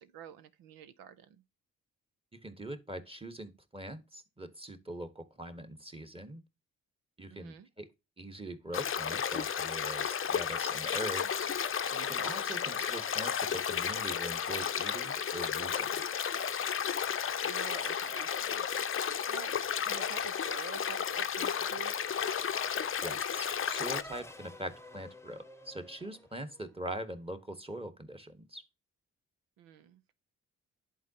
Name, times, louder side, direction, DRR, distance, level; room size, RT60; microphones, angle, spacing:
voice 1, 0.0-1.4 7.3-7.7 12.6-12.9 17.4-18.7 19.3-19.5 19.8-22.0 29.6-30.1, right 8 dB, 85° right, 0.8 m, -48 dB
voice 2, 2.3-6.4 7.2-7.9 8.2-11.5 11.9-15.9 23.0-28.6, right 1 dB, 15° right, 1.4 m, -42 dB
sound 1, 8.7-24.0, left 8 dB, 40° left, 0.6 m, -33 dB
Race car auto racing / Accelerating revving vroom, 21.5-27.1, left 1 dB, 10° left, 0.8 m, -54 dB
11.0 x 3.9 x 2.9 m
supercardioid pair, 50°, 34 cm